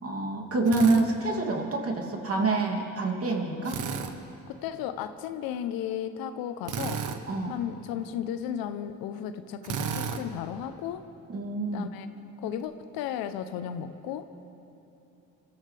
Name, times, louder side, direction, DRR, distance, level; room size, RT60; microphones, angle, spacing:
voice 1, 0.0-3.8 7.3-7.6 11.3-11.9, right 3 dB, 40° right, 1 dB, 2.8 m, -27 dB
Drill, 0.7-1.0 3.6-4.1 6.6-7.2 9.6-10.2, right 7 dB, 60° right, 1.2 m, -32 dB
voice 2, 4.5-7.2 7.5-11.0 11.7-12.1 12.4-14.2, left 9 dB, 75° left, 11 dB, 0.8 m, -34 dB
25.5 x 13.5 x 3.4 m, 2.9 s
supercardioid pair, 65°, 36 cm